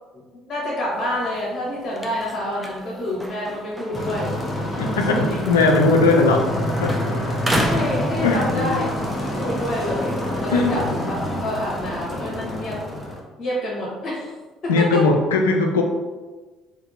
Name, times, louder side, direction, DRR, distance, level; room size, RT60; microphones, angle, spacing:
voice 1, 0.1-4.3 4.7-5.4 7.5-9.1 9.4-12.8 13.4-14.3 14.6-15.0, left 1 dB, 40° left, -6 dB, 1.1 m, -28 dB
sound 1, 0.9-6.6 6.8-8.9 9.3-12.4, right 1 dB, 15° right, 0.6 m, -33 dB
sound 2, 3.9-13.2, left 1 dB, 20° left, 0.8 m, -27 dB
voice 2, 4.8-6.5 6.8-7.0 8.2-8.9 10.5-10.8 14.7-15.8, left 3 dB, 90° left, 3 dB, 0.4 m, -19 dB
3.5 x 2.7 x 2.5 m, 1.3 s
hypercardioid pair, 60°, 0 cm